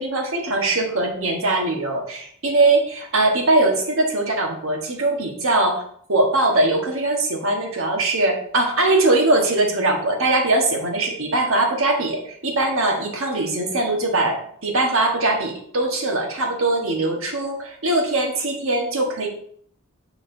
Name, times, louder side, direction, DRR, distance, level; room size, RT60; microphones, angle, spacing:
voice 1, 0.0-5.8 6.1-19.3, right 2 dB, 65° right, 1 dB, 1.4 m, -21 dB
9.1 x 4.8 x 2.7 m, 0.62 s
head